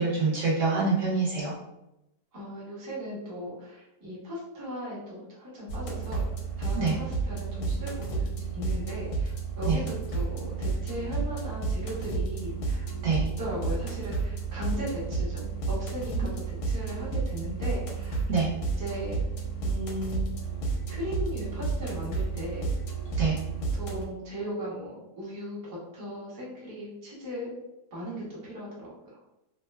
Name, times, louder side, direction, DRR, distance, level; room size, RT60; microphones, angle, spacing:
voice 1, 0.0-1.5 6.7-6.9 9.6-9.8 13.0-13.3 18.3-18.5 23.2-23.4, right 4 dB, 65° right, -6 dB, 0.8 m, -25 dB
voice 2, 2.3-6.3 6.5-8.3 8.5-12.9 13.4-18.2 18.7-19.2 19.6-20.3 20.9-22.7 23.7-27.5 27.9-29.2, equal, 30° right, -7 dB, 0.3 m, -37 dB
sound 1, 5.7-24.0, right 4 dB, 70° left, 0.8 m, -31 dB
2.8 x 2.2 x 2.2 m, 0.90 s
omnidirectional pair, 1.8 m